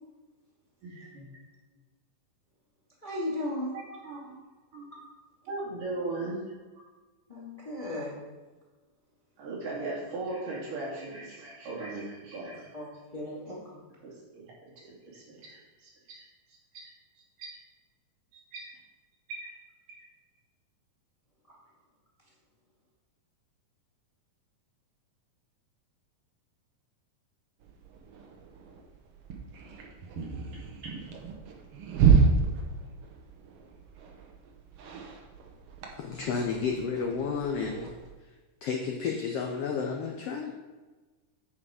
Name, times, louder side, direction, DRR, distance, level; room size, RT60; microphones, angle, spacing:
voice 1, 0.8-1.3 3.7-4.4 4.7-4.9 5.4-6.4 6.8-6.9 9.4-12.7 14.0-16.9 17.4-17.6 18.3-18.7 19.3-19.4 20.0-20.1 30.8-30.9, right 2 dB, 85° right, -5 dB, 4.1 m, -39 dB
voice 2, 3.0-3.7 7.3-8.1 12.7-12.9 13.1-13.6, left 1 dB, 15° left, -5 dB, 1.5 m, -35 dB
sound 1, 27.6-38.1, right 5 dB, 65° right, 1.5 m, -30 dB
voice 3, 35.9-37.9 38.2-40.5, left 5 dB, 90° left, 2 dB, 1.3 m, -32 dB
9.6 x 4.9 x 4.9 m, 1.2 s
omnidirectional pair, 3.6 m